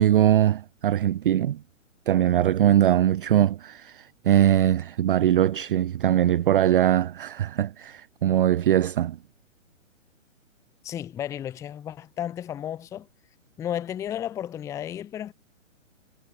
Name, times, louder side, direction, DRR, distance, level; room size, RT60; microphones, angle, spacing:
voice 1, 0.0-1.6 2.1-9.2, right 11 dB, 45° right, 0.5 m, -21 dB
voice 2, 10.8-13.1 13.6-15.3, left 10 dB, 10° left, 0.7 m, -33 dB
hypercardioid pair, 140°, 39 cm